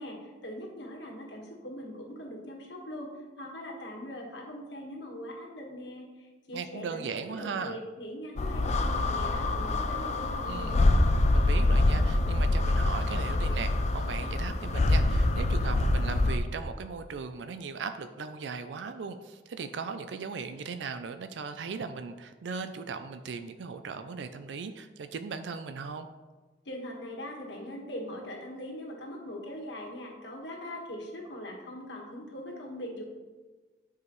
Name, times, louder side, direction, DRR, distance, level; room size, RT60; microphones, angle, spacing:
voice 1, 0.0-7.0 7.4-10.9 26.6-33.0, equal, 75° left, 0 dB, 1.5 m, -41 dB
voice 2, 6.5-7.8 10.5-26.1, right 5 dB, 75° right, 9 dB, 0.4 m, -38 dB
sound 1, 8.4-16.4, left 2 dB, 40° left, 0.4 m, -25 dB
9.7 x 4.8 x 3.1 m, 1.3 s
head